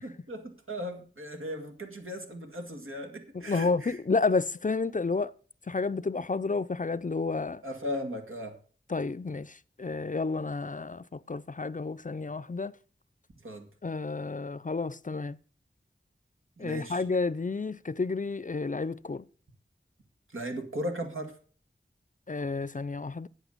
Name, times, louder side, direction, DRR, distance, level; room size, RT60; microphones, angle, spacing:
voice 1, 0.0-4.0 7.6-8.6 13.4-13.7 16.6-17.0 20.3-21.3, equal, 90° right, 2.1 m, -37 dB
voice 2, 3.3-5.3 5.7-7.6 8.9-12.7 13.8-15.4 16.6-19.3 22.3-23.3, left 4 dB, 40° left, 0.5 m, -31 dB
9.2 x 8.2 x 6.6 m
wide cardioid pair, 50°, 20 cm